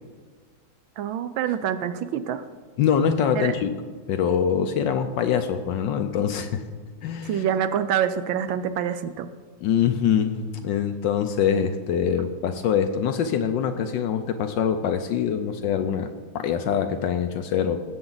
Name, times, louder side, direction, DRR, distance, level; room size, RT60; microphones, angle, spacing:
voice 1, 1.0-2.4 3.4-3.5 7.2-9.3, right 9 dB, 75° right, 11 dB, 1.3 m, -26 dB
voice 2, 2.8-3.7 4.1-6.6 7.0-7.5 9.6-16.1 16.3-17.8, left 8 dB, 75° left, 8 dB, 1.1 m, -24 dB
18.0 x 7.7 x 3.9 m, 1.5 s
omnidirectional pair, 2.3 m